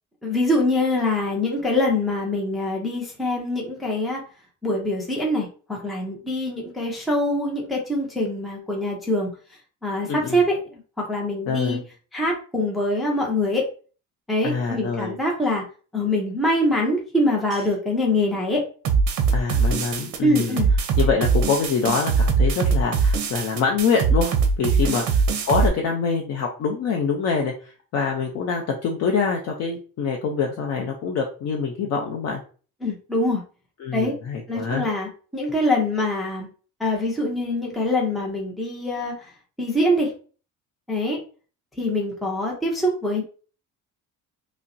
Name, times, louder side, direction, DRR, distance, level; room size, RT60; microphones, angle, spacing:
voice 1, 0.2-4.2 4.6-9.3 9.8-11.8 12.1-13.6 14.3-15.6 15.9-18.6 20.2-20.7 24.8-25.1 32.8-33.4 33.9-34.1 34.5-36.5 36.8-39.3 39.6-40.1 40.9-41.2 41.8-43.2, left 1 dB, ahead, -2 dB, 0.5 m, -24 dB
voice 2, 10.1-10.4 11.5-11.8 14.4-15.2 19.3-20.6 21.0-27.5 27.9-32.4 33.8-34.9, left 5 dB, 50° left, 1 dB, 0.6 m, -25 dB
sound 1, 18.8-25.7, right 5 dB, 55° right, 0.6 m, -21 dB
5.3 x 2.1 x 2.6 m, 0.39 s
cardioid pair, 175°, 34 cm